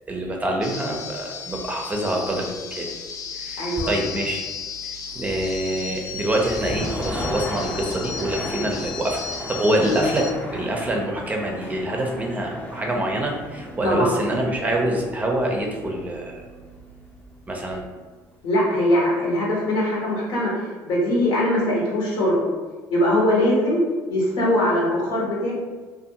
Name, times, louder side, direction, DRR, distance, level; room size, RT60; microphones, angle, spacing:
voice 1, 0.1-2.9 3.3-4.4 4.8-16.4 17.5-17.8, right 1 dB, 20° right, 0 dB, 0.5 m, -25 dB
sound 1, 0.6-10.3, left 6 dB, 50° left, 0.4 m, -35 dB
voice 2, 3.6-3.9 13.8-14.1 18.4-22.4 22.9-23.8 24.1-25.5, left 1 dB, 75° left, -5 dB, 1.1 m, -21 dB
sound 2, 6.2-18.0, equal, 20° left, 0.7 m, -36 dB
2.5 x 2.4 x 2.8 m, 1.4 s
supercardioid pair, 85°, 8 cm